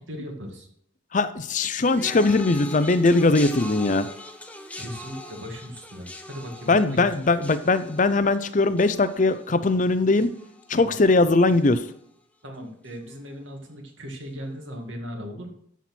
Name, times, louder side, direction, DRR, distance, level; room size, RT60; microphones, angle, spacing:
voice 1, 0.1-0.7 4.8-7.1 10.7-11.0 12.4-15.5, equal, 85° right, 2 dB, 2.2 m, -38 dB
voice 2, 1.1-4.1 6.7-10.3 10.7-11.9, left 3 dB, 40° left, 12 dB, 0.6 m, -20 dB
sound 1, 1.8-11.2 11.5-12.0 12.9-13.0, left 1 dB, 10° left, 0.8 m, -42 dB
13.0 x 4.4 x 6.1 m, 0.68 s
head